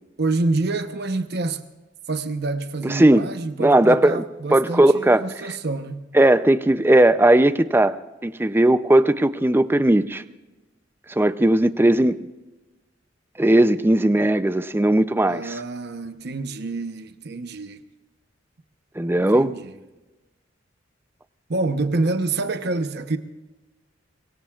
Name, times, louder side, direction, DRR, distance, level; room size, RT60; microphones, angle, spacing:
voice 1, 0.2-1.6 2.1-6.0 15.2-17.8 19.1-19.7 21.5-23.2, right 3 dB, 60° right, 0.9 m, -27 dB
voice 2, 2.8-3.3 3.6-4.2 4.5-5.6 6.1-8.0 8.2-10.2 11.2-12.2 13.4-15.6 19.0-19.5, right 1 dB, 10° right, 0.5 m, -17 dB
25.0 x 22.0 x 2.4 m
head